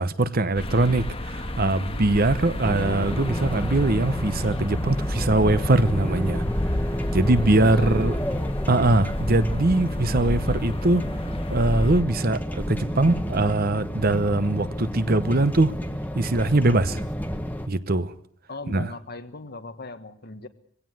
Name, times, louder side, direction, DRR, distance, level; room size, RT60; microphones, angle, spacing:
voice 1, 0.0-6.4 7.1-8.2 8.7-11.1 11.5-15.7 16.1-17.1 17.7-18.1 18.7-18.9, right 2 dB, 45° right, 0.9 m, -22 dB
sound 1, 0.5-12.0, left 1 dB, 30° left, 1.5 m, -30 dB
sound 2, 2.6-17.7, equal, 10° left, 1.3 m, -31 dB
sound 3, 2.8-11.6, left 2 dB, 65° left, 4.4 m, -39 dB
voice 2, 7.4-8.2 18.5-20.5, left 3 dB, 50° left, 1.6 m, -39 dB
22.0 x 17.0 x 7.8 m
head